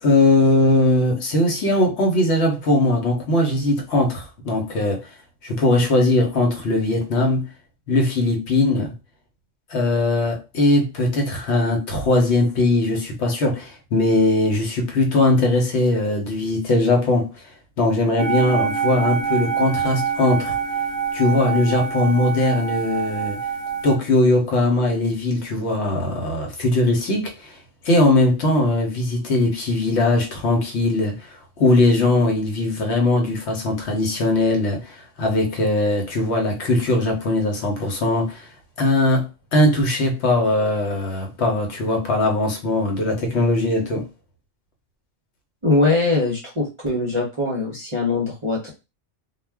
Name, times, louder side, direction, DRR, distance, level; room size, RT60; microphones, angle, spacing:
voice 1, 0.0-5.1 5.4-7.5 7.9-8.9 9.7-17.3 17.8-20.6 21.1-23.4 23.8-27.6 27.8-38.5 38.8-44.1, left 2 dB, 65° left, 1.0 m, -20 dB
sound 1, 18.2-24.0, right 7 dB, 70° right, 0.8 m, -25 dB
voice 2, 45.6-48.7, left 2 dB, 35° right, 0.5 m, -21 dB
2.3 x 2.1 x 3.3 m
omnidirectional pair, 1.3 m